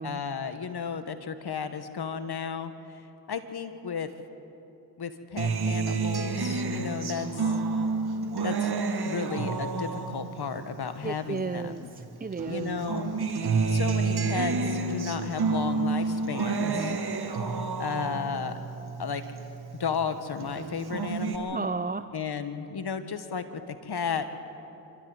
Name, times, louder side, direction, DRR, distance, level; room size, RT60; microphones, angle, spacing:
voice 1, 0.0-2.7 3.3-4.1 5.0-7.5 8.4-8.7 9.0-11.7 12.5-13.4 13.7-17.0 17.8-18.5 19.0-19.2 19.8-21.7 22.1-24.3, left 6 dB, 55° left, 10 dB, 1.7 m, -33 dB
Acoustic guitar, 5.4-12.0 12.4-20.0 20.4-21.4, right 4 dB, 55° right, 2.0 m, -30 dB
voice 2, 11.0-12.8 16.6-17.0 21.5-22.0, right 4 dB, 20° right, 11 dB, 0.6 m, -33 dB
26.5 x 13.5 x 8.1 m, 2.9 s
supercardioid pair, 45°, 47 cm